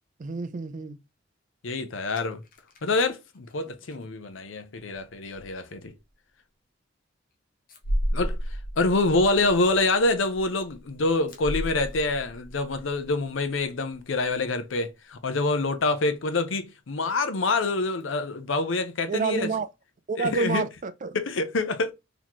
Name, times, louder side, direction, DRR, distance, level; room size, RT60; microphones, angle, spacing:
voice 1, 0.2-1.0 19.1-19.7 20.1-21.2, right 4 dB, 40° right, 0.4 m, -29 dB
voice 2, 1.6-2.4 2.8-5.9 8.1-8.4 8.8-19.5 20.2-20.6 21.1-21.9, left 3 dB, 80° left, 0.6 m, -26 dB
sound 1, 2.1-2.9 3.3-3.5 3.9-4.0 4.7-5.0 5.3-5.5 5.8-5.9 7.7-13.6 13.9-14.0 14.3-14.4 18.0-18.1, equal, 45° left, 0.9 m, -34 dB
4.1 x 2.9 x 3.0 m
head